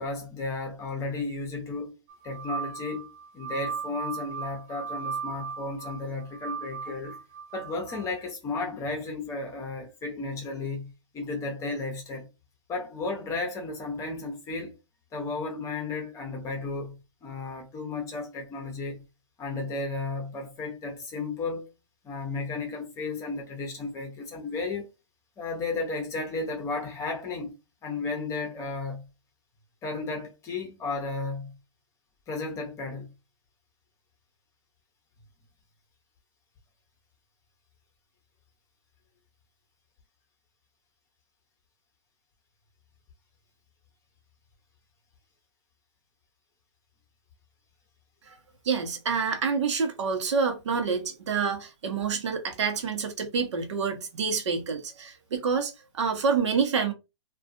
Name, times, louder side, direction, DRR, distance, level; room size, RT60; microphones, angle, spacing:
voice 1, 0.0-2.0 2.2-3.1 3.3-7.2 7.5-12.3 12.7-14.7 15.1-19.0 19.4-21.7 22.0-24.9 25.4-27.6 27.8-29.1 29.8-31.6 32.3-33.1, left 3 dB, 20° left, 0.7 m, -34 dB
sound 1, 2.1-8.1, right 6 dB, 25° right, 0.3 m, -37 dB
voice 2, 48.6-56.9, right 5 dB, 70° right, 0.9 m, -27 dB
2.4 x 2.3 x 2.5 m
hypercardioid pair, 135°, 16 cm